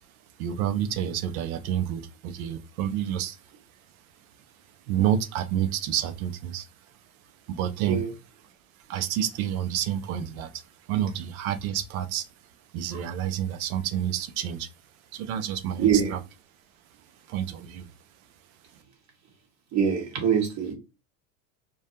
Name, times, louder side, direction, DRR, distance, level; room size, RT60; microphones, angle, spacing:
voice 1, 0.4-3.4 4.9-6.7 7.5-8.0 8.9-10.6 10.9-12.2 12.7-14.7 15.1-16.2 17.3-17.8, right 10 dB, 85° right, 0.5 m, -29 dB
voice 2, 15.8-16.1 19.7-20.7, right 8 dB, 40° right, 1.1 m, -24 dB
2.3 x 2.1 x 2.7 m
supercardioid pair, 100°, 41 cm